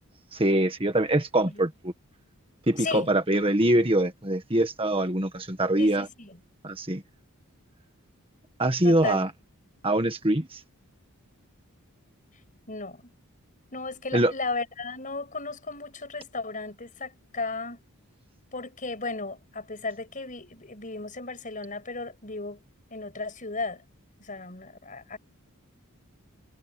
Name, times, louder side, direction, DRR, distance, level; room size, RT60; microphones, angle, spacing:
voice 1, 0.3-1.9 2.7-6.1 6.6-7.0 8.6-9.3 9.8-10.6 14.1-14.3, right 1 dB, 25° right, 1.7 m, -24 dB
voice 2, 2.8-3.1 5.8-6.4 8.8-9.3 12.7-13.1 13.7-17.8 18.5-22.6 22.9-23.8 24.2-25.2, left 3 dB, 35° left, 6.5 m, -35 dB
head